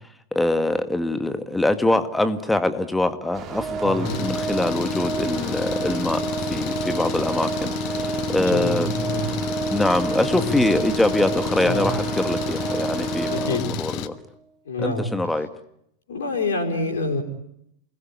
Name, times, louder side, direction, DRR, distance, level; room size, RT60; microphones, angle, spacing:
voice 1, 0.3-8.9 9.7-14.2 14.8-15.5, left 2 dB, 5° left, 10 dB, 1.9 m, -24 dB
sound 1, 3.3-13.4, right 8 dB, 35° right, 2.4 m, -37 dB
Organ, 3.5-14.2, right 3 dB, 20° right, 1.1 m, -29 dB
voice 2, 3.8-4.2 8.3-9.3 10.3-10.6 11.6-12.0 13.3-13.6 14.6-15.1 16.1-17.2, left 2 dB, 60° left, 1 dB, 4.8 m, -27 dB
Engine, 4.1-14.1, left 12 dB, 40° left, 1.5 m, -31 dB
28.5 x 21.0 x 10.0 m, 0.77 s
figure-of-eight pair, 90°, 0 cm